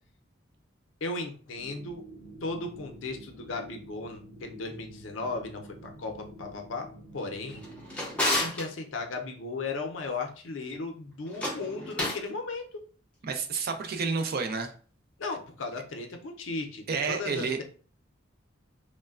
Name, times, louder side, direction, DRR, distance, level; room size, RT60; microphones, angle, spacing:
voice 1, 1.0-2.0 2.4-6.9 7.1-7.6 8.4-12.6 15.2-17.6, left 3 dB, 75° left, 4 dB, 0.5 m, -36 dB
sound 1, 1.5-8.5, equal, 20° right, 1.4 m, -48 dB
Drawer open or close, 7.5-8.7 11.2-12.3, left 1 dB, 5° left, 0.6 m, -31 dB
voice 2, 13.2-14.7 16.9-17.6, right 5 dB, 50° right, 6 dB, 0.4 m, -30 dB
3.1 x 2.1 x 2.3 m, 0.41 s
head